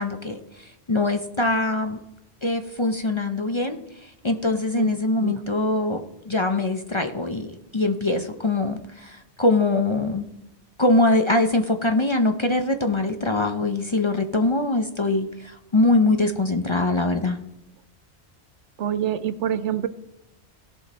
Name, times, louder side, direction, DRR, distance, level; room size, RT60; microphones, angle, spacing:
voice 1, 0.0-2.0 2.4-3.8 4.2-6.0 6.3-10.2 10.8-17.4, left 2 dB, 30° left, 6 dB, 0.6 m, -23 dB
voice 2, 18.8-19.9, right 9 dB, 85° right, 13 dB, 1.0 m, -26 dB
17.0 x 5.8 x 4.1 m, 0.90 s
omnidirectional pair, 1.2 m